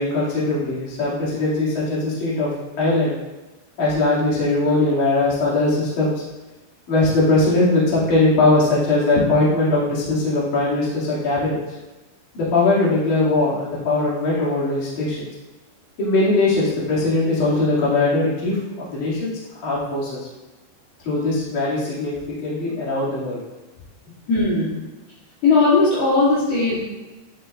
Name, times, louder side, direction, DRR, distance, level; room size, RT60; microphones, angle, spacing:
voice 1, 0.0-2.5 2.8-3.1 3.8-6.1 6.9-11.6 12.3-15.3 16.0-19.3 19.6-20.3 21.0-23.4, left 2 dB, 50° left, -8 dB, 3.3 m, -20 dB
voice 2, 24.3-24.8 25.4-26.8, left 3 dB, 65° left, -8 dB, 3.2 m, -17 dB
11.0 x 6.1 x 2.5 m, 1.1 s
omnidirectional pair, 5.5 m